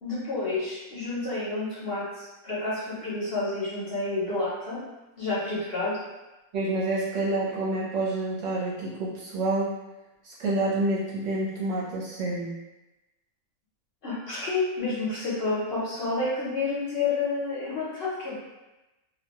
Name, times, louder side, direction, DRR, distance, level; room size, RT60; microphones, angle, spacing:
voice 1, 0.0-4.8 5.2-6.0 14.0-18.3, left 3 dB, 50° left, -9 dB, 0.8 m, -29 dB
voice 2, 6.5-9.7 10.2-12.6, right 2 dB, 65° right, -6 dB, 0.9 m, -28 dB
2.5 x 2.2 x 2.9 m, 1.0 s
omnidirectional pair, 1.5 m